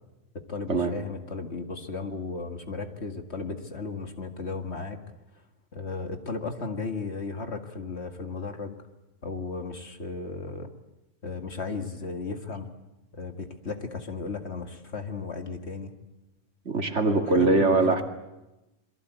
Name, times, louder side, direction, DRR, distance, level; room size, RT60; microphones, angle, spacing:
voice 1, 0.5-5.0 5.7-8.8 9.2-10.7 11.2-12.7 13.1-15.9 17.1-18.0, left 4 dB, 55° left, 6 dB, 2.2 m, -35 dB
voice 2, 16.7-18.0, right 3 dB, 65° right, 5 dB, 2.6 m, -22 dB
27.5 x 22.5 x 8.2 m, 0.99 s
omnidirectional pair, 1.3 m